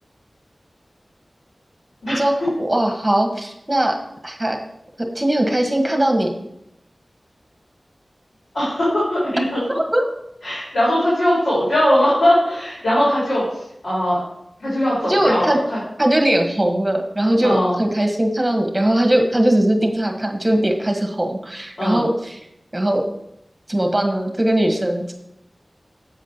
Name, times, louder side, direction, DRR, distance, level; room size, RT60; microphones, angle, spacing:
voice 1, 2.1-4.0 4.2-4.6 5.1-6.3 9.7-10.0 15.0-15.6 16.0-22.4 22.7-23.0 23.7-25.1, right 1 dB, 20° right, 2 dB, 1.6 m, -20 dB
voice 2, 8.5-9.8 10.4-14.2 14.6-15.8 17.4-17.7 21.8-22.0, equal, 85° left, -8 dB, 3.7 m, -20 dB
8.3 x 4.9 x 6.0 m, 0.80 s
wide cardioid pair, 75°, 0 cm